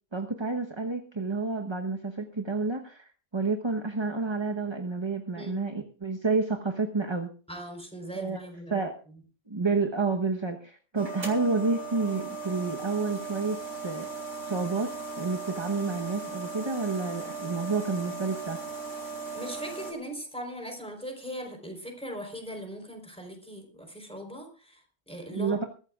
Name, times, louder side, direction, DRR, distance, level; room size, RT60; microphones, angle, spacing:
voice 1, 0.1-7.3 8.1-8.4 8.7-9.0 9.5-14.1 14.4-18.6 25.3-25.6, right 4 dB, 25° right, 4 dB, 1.0 m, -30 dB
voice 2, 5.3-5.6 7.5-8.9 19.3-25.6, equal, 5° left, 2 dB, 3.9 m, -40 dB
sound 1, 11.0-19.9, right 4 dB, 75° right, 3.9 m, -37 dB
22.0 x 14.0 x 2.4 m, 0.39 s
omnidirectional pair, 1.3 m